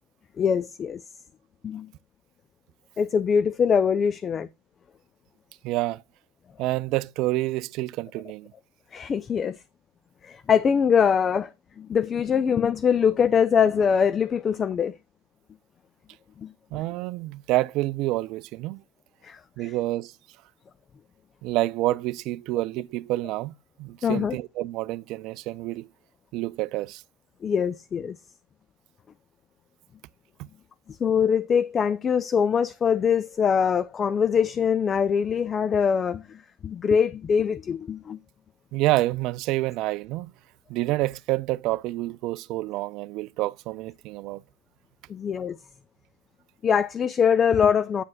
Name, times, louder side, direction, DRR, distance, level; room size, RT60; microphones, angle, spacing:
voice 1, 0.4-1.0 1.6-1.9 3.0-4.5 8.9-9.6 10.2-11.5 11.8-14.9 16.4-16.5 19.2-19.4 24.0-24.4 27.4-28.2 31.0-36.4 36.6-38.2 45.1-45.6 46.6-48.0, left 7 dB, 30° left, 0.4 m, -23 dB
voice 2, 5.6-6.0 6.6-8.5 16.7-18.8 19.6-20.1 21.4-23.5 23.8-25.9 26.3-27.0 30.4-30.5 38.7-40.3 40.7-44.4, right 17 dB, 50° right, 0.4 m, -28 dB
9.1 x 7.4 x 2.2 m
hypercardioid pair, 90°, 0 cm